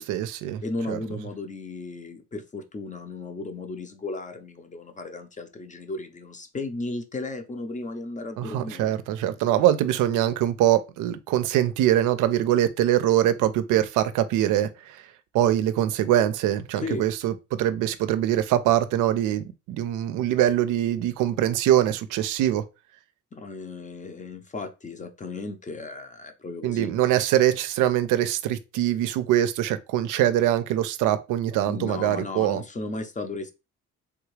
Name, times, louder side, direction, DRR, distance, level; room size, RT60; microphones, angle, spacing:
voice 1, 0.0-0.6 0.9-1.0 8.4-15.1 15.3-22.6 26.6-32.6, right 12 dB, 90° right, 0.5 m, -23 dB
voice 2, 0.6-9.0 16.8-17.0 23.3-26.9 31.7-33.5, left 3 dB, 25° left, 0.6 m, -35 dB
3.5 x 2.4 x 3.1 m
cardioid pair, 90°, 30 cm